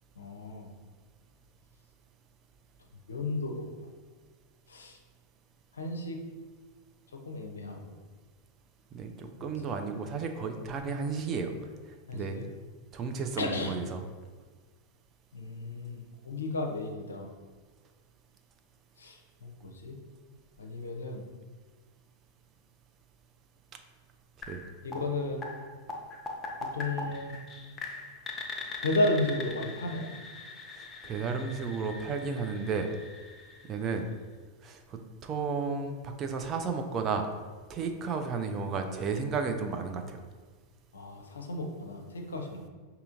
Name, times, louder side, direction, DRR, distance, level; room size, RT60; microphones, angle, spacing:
voice 1, 0.2-0.7 3.1-3.7 4.7-5.0 5.7-6.2 7.1-7.9 9.4-9.7 12.1-12.5 13.4-13.7 15.3-17.3 19.0-20.0 20.6-21.2 24.8-25.4 26.6-27.4 28.8-30.1 40.9-42.7, left 2 dB, 70° left, 3 dB, 0.5 m, -33 dB
voice 2, 8.9-11.5 12.1-12.4 12.9-14.0 24.5-24.6 31.0-32.9 33.6-34.1 34.6-37.3 37.7-40.2, right 5 dB, 30° right, 5 dB, 0.4 m, -33 dB
sound 1, 24.4-34.2, left 3 dB, 25° left, 0.5 m, -42 dB
5.5 x 2.7 x 2.6 m, 1.4 s
figure-of-eight pair, 90°, 0 cm